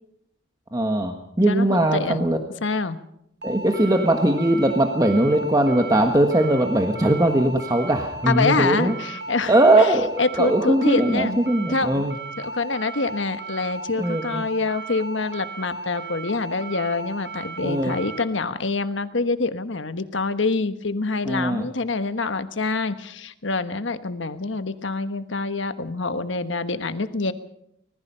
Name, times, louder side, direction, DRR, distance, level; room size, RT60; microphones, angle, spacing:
voice 1, 0.7-2.4 3.4-8.9 9.5-12.2 14.0-14.4 17.6-18.0 21.2-21.7, right 1 dB, 20° right, 4 dB, 1.4 m, -20 dB
voice 2, 1.5-2.3 2.6-3.0 8.3-9.5 10.2-11.4 11.7-12.0 12.4-27.3, left 3 dB, 70° left, 10 dB, 1.3 m, -26 dB
sound 1, 3.4-18.2, right 3 dB, 60° right, 2.8 m, -35 dB
25.5 x 19.5 x 5.7 m, 0.78 s
head